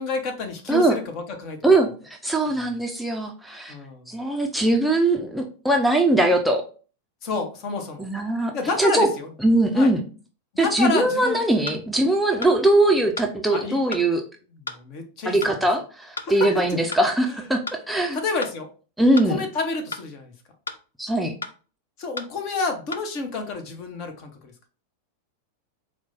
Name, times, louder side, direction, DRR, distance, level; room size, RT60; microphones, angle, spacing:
voice 1, 0.0-1.7 2.5-2.6 3.7-4.1 7.2-8.1 8.5-9.3 9.7-9.9 10.6-11.4 13.5-13.8 14.5-15.6 16.2-16.8 17.4-17.5 18.1-18.7 19.2-20.3 22.0-24.5, left 4 dB, 40° left, 4 dB, 0.8 m, -29 dB
voice 2, 1.6-3.7 4.1-6.6 8.0-8.5 8.8-9.1 9.4-10.0 10.6-14.2 15.3-18.2 19.0-19.4 21.0-21.3, right 1 dB, 5° right, 2 dB, 0.5 m, -21 dB
sound 1, 11.7-11.8 12.4-12.6 13.2-13.3 13.9-14.1 14.7-14.8 15.4-15.6 16.2-16.3 16.9-17.1 17.7-17.8 18.4-18.6 19.2-19.3 19.9-20.1 20.7-20.8 21.4-21.6 22.2-22.3 22.9-23.0, left 3 dB, 75° left, 0.3 m, -33 dB
4.5 x 2.2 x 4.1 m, 0.37 s
figure-of-eight pair, 90°, 0 cm